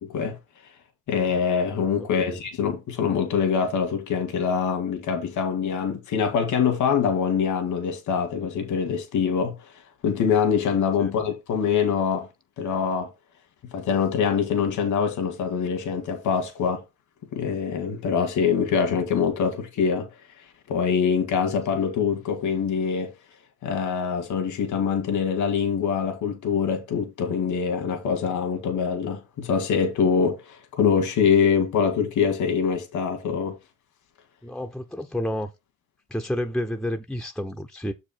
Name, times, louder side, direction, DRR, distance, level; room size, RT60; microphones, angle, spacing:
voice 1, 1.1-9.5 10.0-12.3 12.6-13.1 13.7-16.8 17.3-20.1 20.7-23.1 23.6-33.6, left 6 dB, 80° left, 2.2 m, -24 dB
voice 2, 34.4-35.5 36.1-37.9, left 1 dB, ahead, 0.8 m, -30 dB
6.8 x 5.0 x 4.5 m
cardioid pair, 90°, 30 cm